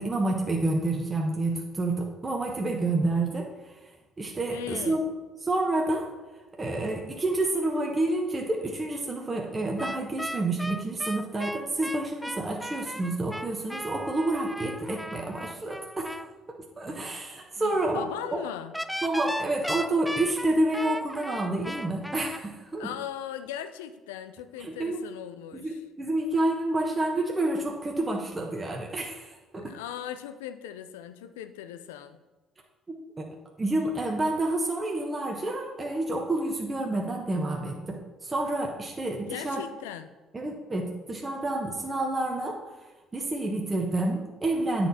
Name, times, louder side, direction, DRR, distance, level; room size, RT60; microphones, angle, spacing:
voice 1, 0.0-3.5 4.2-5.1 5.4-6.1 6.6-16.1 16.8-18.4 19.0-22.9 24.6-25.0 25.5-29.7 32.9-39.6 40.3-42.6 43.1-44.9, right 2 dB, 25° right, 0 dB, 1.3 m, -29 dB
voice 2, 4.5-5.0 17.6-18.7 22.8-25.8 29.5-32.2 39.2-40.1, left 10 dB, 85° left, 11 dB, 0.4 m, -39 dB
sound 1, 9.8-16.3 18.7-22.4, equal, ahead, 0.4 m, -36 dB
9.0 x 4.4 x 4.2 m, 1.2 s
hypercardioid pair, 55°, 0 cm